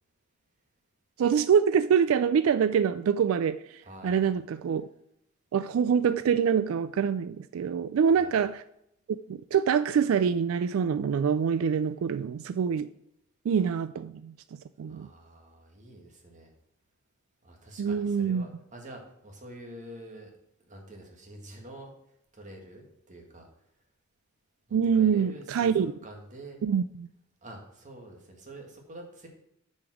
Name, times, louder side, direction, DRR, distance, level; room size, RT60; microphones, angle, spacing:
voice 1, 1.2-4.9 5.5-8.6 9.3-12.9 13.5-14.3 14.8-15.1 17.8-18.5 24.7-25.9 26.6-27.1, right 7 dB, 90° right, 14 dB, 0.3 m, -25 dB
voice 2, 3.8-4.3 8.1-8.3 14.8-16.5 17.4-20.3 20.7-21.9 22.3-23.5 24.9-26.6 27.4-29.3, right 1 dB, 40° right, 2 dB, 1.8 m, -47 dB
6.8 x 5.2 x 6.2 m, 0.78 s
head